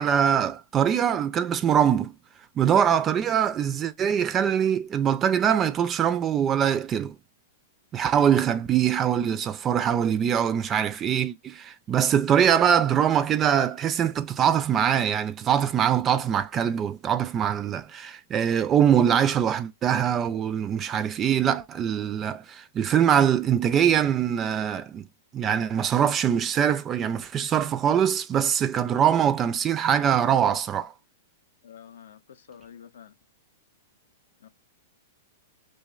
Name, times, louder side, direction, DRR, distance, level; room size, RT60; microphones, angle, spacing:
voice 1, 0.0-2.1 2.6-7.2 7.9-25.1 25.3-30.9, right 9 dB, 25° right, 0.3 m, -23 dB
voice 2, 31.6-32.2 32.5-33.1 34.4-34.5, left 8 dB, 75° left, 0.4 m, -47 dB
2.7 x 2.1 x 2.4 m
hypercardioid pair, 110°, 0 cm